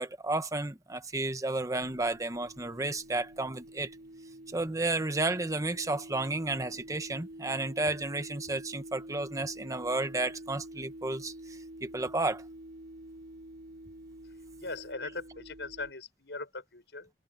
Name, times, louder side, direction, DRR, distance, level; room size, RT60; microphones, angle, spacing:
voice 1, 0.0-3.9 4.5-12.4, right 2 dB, 20° right, 1.0 m, -32 dB
sound 1, 1.8-15.9, right 1 dB, 65° right, 5.8 m, -47 dB
voice 2, 14.6-17.1, left 3 dB, 80° left, 5.8 m, -40 dB
head